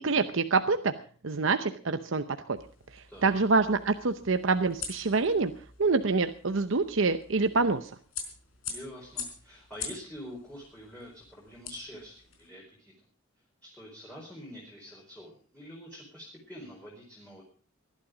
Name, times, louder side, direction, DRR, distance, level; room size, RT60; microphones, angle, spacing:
voice 1, 0.0-0.9 1.2-2.6 2.9-5.5 5.8-7.9, right 4 dB, 70° right, 9 dB, 0.8 m, -26 dB
sound 1, 2.6-12.5, left 6 dB, 85° left, 4.6 m, -45 dB
voice 2, 3.1-3.4 8.7-12.9 13.6-17.4, equal, 10° left, -4 dB, 4.3 m, -46 dB
19.0 x 12.0 x 5.0 m, 0.43 s
head